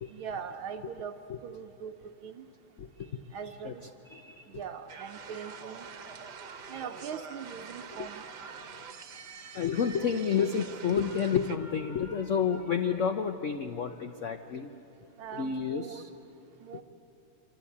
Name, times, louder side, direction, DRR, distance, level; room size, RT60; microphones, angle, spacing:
voice 1, 0.1-1.2 1.4-2.5 3.3-3.8 4.5-5.9 6.7-8.2 15.2-16.1 16.6-16.8, right 7 dB, 75° right, 5 dB, 1.5 m, -41 dB
voice 2, 2.8-3.2 3.6-3.7 4.1-4.6 6.6-6.8 8.0-8.1 9.5-14.7 15.3-16.1, left 7 dB, 60° left, 7 dB, 0.7 m, -30 dB
sound 1, 4.9-11.6, right 6 dB, 55° right, 1.6 m, -45 dB
27.0 x 25.5 x 8.5 m, 2.9 s
omnidirectional pair, 2.4 m